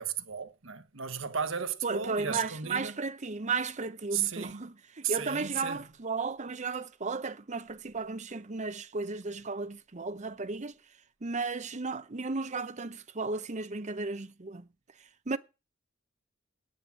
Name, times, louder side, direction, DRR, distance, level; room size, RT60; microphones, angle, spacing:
voice 1, 0.0-3.0 4.1-4.6 5.0-5.9, right 8 dB, 80° right, 1.2 m, -34 dB
voice 2, 1.8-10.8 11.2-14.6 15.3-15.4, right 4 dB, 40° right, 0.8 m, -34 dB
9.4 x 8.7 x 7.4 m
head